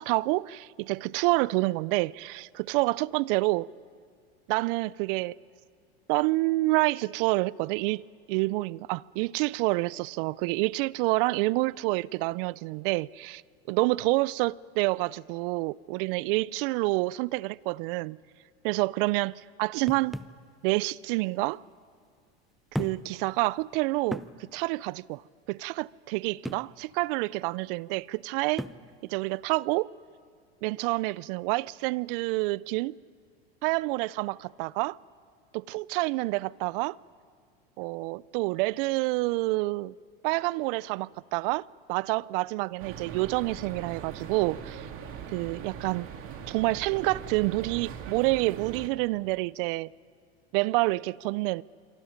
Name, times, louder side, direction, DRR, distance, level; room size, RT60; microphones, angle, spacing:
voice 1, 0.0-3.7 4.5-5.3 6.1-8.0 8.3-13.4 13.7-18.2 18.6-20.2 20.6-21.6 22.8-25.2 25.5-28.6 29.0-29.9 30.6-32.9 33.6-35.0 35.5-37.0 37.8-39.9 40.2-44.9 45.3-46.1 46.5-49.9 50.5-51.6, right 22 dB, 60° right, 0.5 m, -28 dB
sound 1, 19.9-20.4 21.5-21.6 22.7-23.2 23.6-23.7 24.1-24.4 26.5-26.7 28.6-28.9, equal, ahead, 0.6 m, -35 dB
sound 2, 42.8-48.9, right 7 dB, 45° right, 2.1 m, -41 dB
27.0 x 24.0 x 5.2 m
supercardioid pair, 115°, 31 cm